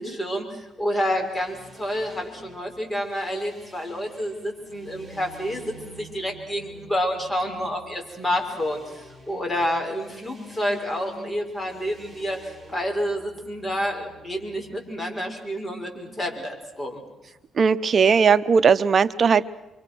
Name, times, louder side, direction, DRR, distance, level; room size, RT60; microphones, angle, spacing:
voice 1, 0.0-17.0, equal, 20° left, 2 dB, 5.8 m, -29 dB
sound 1, 1.1-14.8, right 1 dB, ahead, 5.1 m, -49 dB
voice 2, 17.6-19.4, right 6 dB, 45° right, 14 dB, 0.8 m, -18 dB
28.5 x 24.5 x 6.2 m, 0.99 s
cardioid pair, 95°, 0 cm